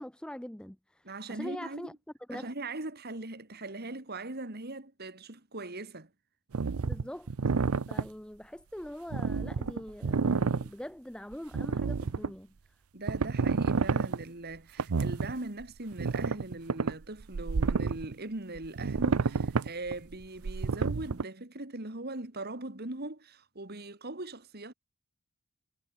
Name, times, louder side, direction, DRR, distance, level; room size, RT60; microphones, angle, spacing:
voice 1, 0.0-1.9 2.3-2.5 6.8-7.3 7.9-12.5, left 1 dB, 5° left, 0.5 m, -43 dB
voice 2, 1.0-1.9 2.3-6.1 12.9-24.7, right 2 dB, 45° right, 2.5 m, -40 dB
sound 1, 6.5-8.1 9.1-10.7 11.3-12.3 13.1-14.2 14.8-15.3 15.6-15.7 15.9-18.1 18.6-21.2, right 5 dB, 90° right, 0.6 m, -29 dB
head